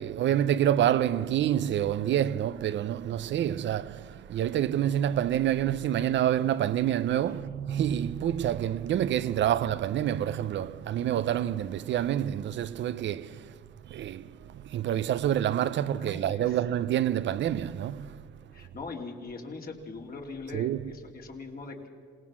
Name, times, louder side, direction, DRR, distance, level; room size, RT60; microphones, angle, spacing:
voice 1, 0.0-13.5 13.9-18.3 20.5-20.9, right 11 dB, 65° right, 0.6 m, -27 dB
voice 2, 16.0-16.6 18.5-21.9, left 3 dB, 50° left, 2.9 m, -41 dB
27.5 x 18.0 x 6.2 m
cardioid pair, 90°, 20 cm